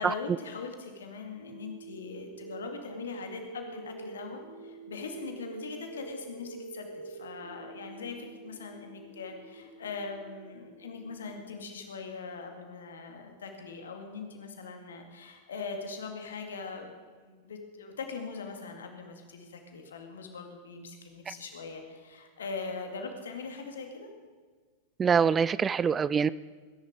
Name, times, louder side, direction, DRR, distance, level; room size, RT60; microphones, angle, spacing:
voice 1, 0.0-24.1, left 4 dB, 65° left, 4 dB, 2.2 m, -41 dB
sound 1, 1.4-11.4, right 3 dB, 85° left, 1.8 m, -46 dB
voice 2, 25.0-26.3, right 6 dB, 20° right, 19 dB, 0.3 m, -24 dB
20.5 x 11.0 x 4.8 m, 1.5 s
figure-of-eight pair, 90°, 0 cm